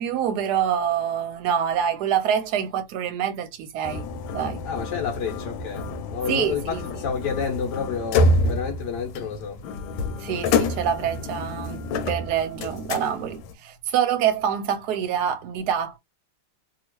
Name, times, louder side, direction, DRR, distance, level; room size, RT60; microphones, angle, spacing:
voice 1, 0.0-4.1 4.3-4.6 6.3-6.8 10.2-16.0, right 9 dB, 70° right, 1.1 m, -26 dB
sound 1, 3.8-13.5, left 2 dB, 90° left, 1.4 m, -27 dB
voice 2, 4.6-9.6, left 6 dB, 70° left, 1.3 m, -30 dB
2.8 x 2.8 x 3.0 m
omnidirectional pair, 2.0 m